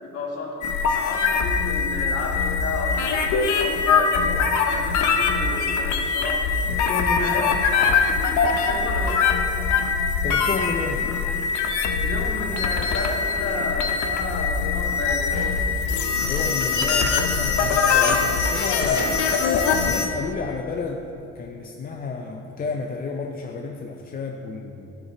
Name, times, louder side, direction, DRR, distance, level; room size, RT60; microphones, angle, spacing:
voice 1, 0.0-0.6 0.9-6.4 7.2-9.3 11.9-15.3, left 3 dB, 50° left, -2 dB, 1.8 m, -32 dB
sound 1, 0.6-20.1, left 5 dB, 70° left, 0.8 m, -22 dB
voice 2, 6.7-7.6 10.2-11.1 16.2-19.1 19.9-24.9, left 4 dB, 30° left, 2 dB, 0.5 m, -31 dB
sound 2, 15.3-20.3, right 1 dB, 30° right, 2.0 m, -37 dB
11.0 x 7.6 x 3.0 m, 2.8 s
cardioid pair, 110°, 30 cm